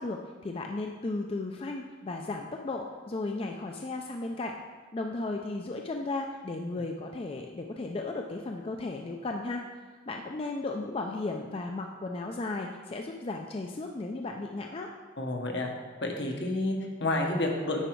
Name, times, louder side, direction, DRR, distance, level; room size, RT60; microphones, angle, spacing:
voice 1, 0.0-4.6 4.9-9.6 10.1-14.9, left 2 dB, 30° left, 2 dB, 0.4 m, -35 dB
voice 2, 15.2-15.7 16.0-17.8, left 2 dB, 65° left, 1 dB, 1.1 m, -30 dB
9.0 x 4.6 x 4.6 m, 1.4 s
head